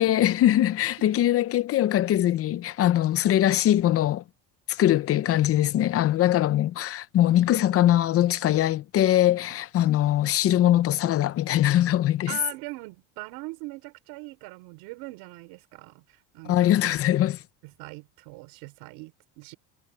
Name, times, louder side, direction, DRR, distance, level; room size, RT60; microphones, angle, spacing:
voice 1, 0.0-4.2 4.7-12.4 16.5-17.4, left 12 dB, 35° left, 0.6 m, -22 dB
voice 2, 12.3-16.8 17.6-19.5, right 24 dB, 85° right, 5.0 m, -41 dB
cardioid pair, 150°, 39 cm